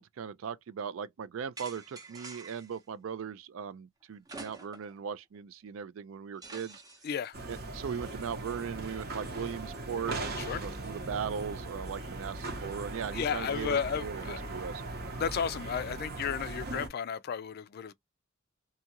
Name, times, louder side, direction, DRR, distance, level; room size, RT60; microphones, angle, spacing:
voice 1, 0.0-6.8 7.5-14.8, right 7 dB, 75° right, 0.4 m, -38 dB
sound 1, 1.6-2.8 4.3-5.0 5.4-5.5 6.4-7.3, right 3 dB, 20° right, 0.7 m, -47 dB
voice 2, 7.0-7.4 10.4-10.6 13.1-14.4 15.2-17.9, left 7 dB, 50° left, 0.3 m, -33 dB
sound 2, 7.3-16.9, right 2 dB, 50° right, 0.8 m, -39 dB
2.8 x 2.3 x 2.8 m
head